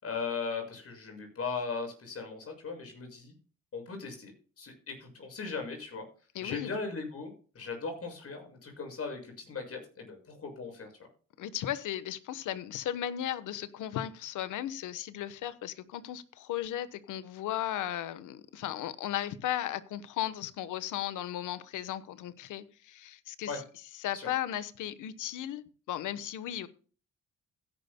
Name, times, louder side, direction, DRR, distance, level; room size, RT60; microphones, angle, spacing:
voice 1, 0.0-3.3 3.7-6.0 6.4-10.9 23.5-23.6 24.1-24.3, left 4 dB, 50° left, 4 dB, 6.6 m, -38 dB
voice 2, 6.3-6.7 11.4-23.6 24.0-26.7, left 12 dB, 80° left, 14 dB, 1.1 m, -36 dB
16.5 x 11.0 x 2.2 m, 0.39 s
cardioid pair, 90°, 30 cm